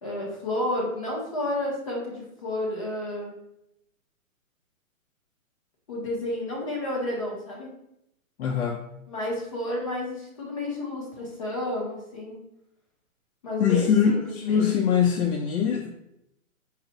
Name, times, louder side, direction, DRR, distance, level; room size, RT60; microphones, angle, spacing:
voice 1, 0.0-3.3 5.9-7.7 9.1-12.4 13.4-14.6, left 1 dB, 25° left, -3 dB, 0.7 m, -31 dB
voice 2, 8.4-8.8 13.6-15.9, left 7 dB, 85° left, 2 dB, 0.6 m, -23 dB
4.1 x 2.0 x 4.0 m, 0.81 s
hypercardioid pair, 165°, 42 cm